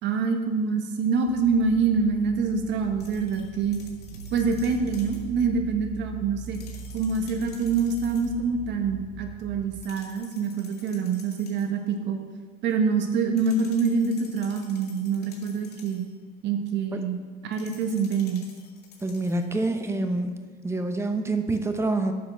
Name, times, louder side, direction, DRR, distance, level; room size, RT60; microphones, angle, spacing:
voice 1, 0.0-3.8 4.3-6.6 6.9-12.2 12.6-16.1 16.4-17.2 17.4-18.4, right 5 dB, 60° right, 5 dB, 1.3 m, -26 dB
sound 1, 1.3-9.8, right 6 dB, 90° right, 0.9 m, -41 dB
sound 2, 3.0-5.3 6.4-8.4 9.8-11.8 13.4-16.1 17.5-19.5, left 5 dB, 50° left, 2.1 m, -51 dB
voice 2, 19.0-20.3 20.6-22.1, right 2 dB, 15° right, 5 dB, 1.0 m, -26 dB
9.2 x 5.9 x 6.3 m, 1.4 s
supercardioid pair, 110°, 21 cm